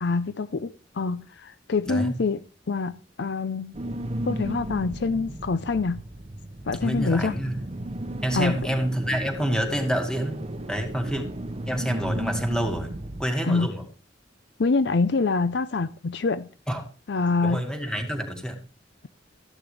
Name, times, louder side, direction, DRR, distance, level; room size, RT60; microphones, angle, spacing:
voice 1, 0.0-2.4 2.7-3.8 4.3-6.0 6.7-7.3 8.3-8.6 13.4-13.7 14.6-16.5 17.1-17.6, left 4 dB, 65° left, 0.5 m, -25 dB
voice 2, 1.9-2.2 6.8-7.6 8.2-11.2 11.7-13.9 16.7-16.9 17.4-18.6, equal, 5° left, 2.0 m, -28 dB
sound 1, 3.7-13.2, right 1 dB, 35° right, 0.7 m, -34 dB
14.0 x 10.5 x 3.4 m
head